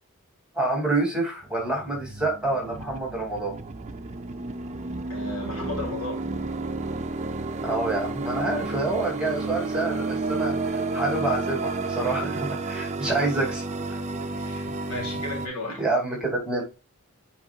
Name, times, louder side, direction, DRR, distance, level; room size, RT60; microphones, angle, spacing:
voice 1, 0.5-3.6 7.6-14.0 15.8-16.6, right 2 dB, 5° right, 2.7 m, -27 dB
sound 1, 1.4-15.5, right 3 dB, 35° right, 0.7 m, -31 dB
voice 2, 5.1-6.2 13.0-13.2 14.3-15.8, left 2 dB, 75° left, 3.5 m, -34 dB
8.6 x 4.8 x 2.4 m
head